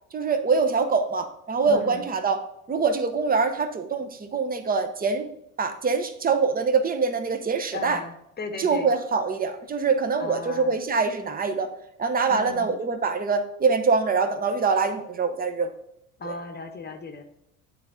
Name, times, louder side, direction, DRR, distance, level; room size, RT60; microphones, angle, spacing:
voice 1, 0.1-5.3 5.6-8.0 8.6-11.7 12.0-15.7 16.2-16.3, right 4 dB, 20° right, 8 dB, 0.8 m, -24 dB
voice 2, 1.6-2.1 7.7-8.9 10.2-10.8 12.3-12.7 16.2-17.2, left 4 dB, 25° left, 6 dB, 1.0 m, -36 dB
8.9 x 3.8 x 3.6 m, 0.80 s
supercardioid pair, 90°, 41 cm